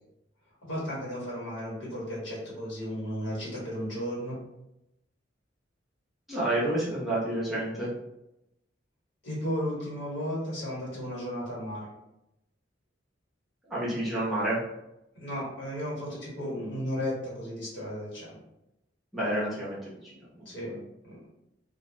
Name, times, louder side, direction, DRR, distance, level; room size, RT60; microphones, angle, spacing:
voice 1, 0.6-4.4 9.2-11.9 15.1-18.4 20.4-20.7 21.0-21.3, equal, 70° left, -7 dB, 1.4 m, -34 dB
voice 2, 6.3-7.9 13.7-14.6 19.1-20.6, right 1 dB, ahead, -9 dB, 0.8 m, -30 dB
2.3 x 2.2 x 3.1 m, 0.87 s
head